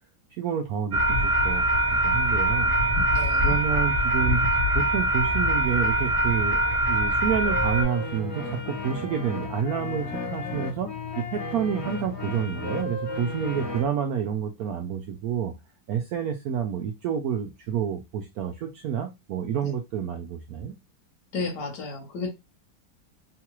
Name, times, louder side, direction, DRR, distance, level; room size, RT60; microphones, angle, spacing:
voice 1, 0.3-1.8 2.0-2.7 3.4-4.4 4.7-15.5 15.9-20.7, right 8 dB, 75° right, 0.8 m, -29 dB
sound 1, 0.9-7.8, right 1 dB, 40° right, 0.4 m, -23 dB
voice 2, 3.1-3.6 19.6-19.7 21.3-22.3, left 4 dB, 65° left, 1.6 m, -33 dB
sound 2, 7.4-13.8, left 3 dB, 45° left, 1.0 m, -34 dB
3.8 x 2.4 x 2.9 m
omnidirectional pair, 2.0 m